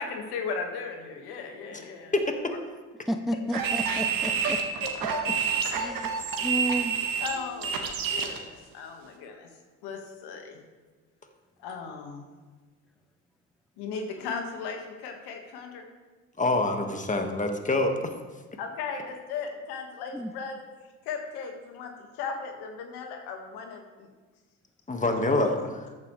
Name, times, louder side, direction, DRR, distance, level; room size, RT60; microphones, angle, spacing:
voice 1, 0.0-2.6 5.1-5.2 5.7-6.1 7.2-9.5 9.8-10.6 11.6-12.3 13.8-15.8 18.6-20.6 21.1-24.1, left 5 dB, 75° left, 3 dB, 1.8 m, -37 dB
voice 2, 3.1-4.6 5.7-6.1 6.4-6.9 20.1-20.3, equal, ahead, 7 dB, 0.7 m, -31 dB
sound 1, 3.5-8.4, right 6 dB, 60° right, 1.8 m, -28 dB
voice 3, 16.4-18.1 24.9-25.9, left 2 dB, 20° left, 4 dB, 1.7 m, -26 dB
14.0 x 9.4 x 3.3 m, 1.3 s
supercardioid pair, 65°, 39 cm